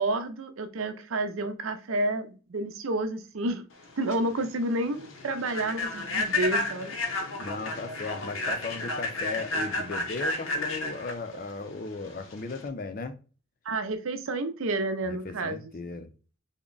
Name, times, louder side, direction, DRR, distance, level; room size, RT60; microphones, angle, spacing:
voice 1, 0.0-3.6 4.0-6.9 13.7-15.7, right 2 dB, 85° right, 0.6 m, -30 dB
Human voice / Train, 3.8-12.7, left 2 dB, 80° left, 0.7 m, -32 dB
voice 2, 7.4-13.2 15.0-16.1, left 3 dB, 45° left, 0.5 m, -36 dB
3.5 x 2.1 x 3.8 m
head